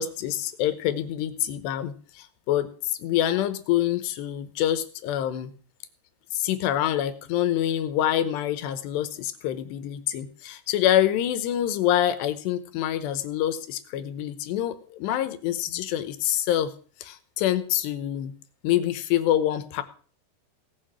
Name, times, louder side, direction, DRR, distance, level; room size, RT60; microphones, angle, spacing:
voice 1, 0.0-5.5 6.3-16.7 17.0-18.3 18.6-19.8, left 11 dB, 85° left, 11 dB, 3.1 m, -26 dB
17.0 x 6.7 x 6.2 m, 0.43 s
omnidirectional pair, 4.9 m